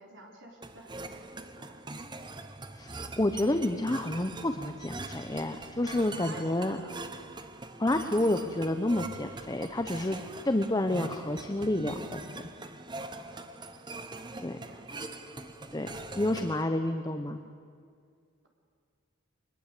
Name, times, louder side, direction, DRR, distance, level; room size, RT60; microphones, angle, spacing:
voice 1, 0.0-1.8 5.9-6.9 13.0-13.5 14.6-14.8, right 2 dB, 60° right, 1 dB, 4.0 m, -50 dB
sound 1, 0.6-16.6, right 2 dB, 20° right, 1.0 m, -42 dB
voice 2, 2.7-6.8 7.8-12.4 14.4-14.6 15.7-17.4, left 1 dB, 20° left, 7 dB, 0.8 m, -29 dB
24.0 x 20.5 x 8.3 m, 2.2 s
head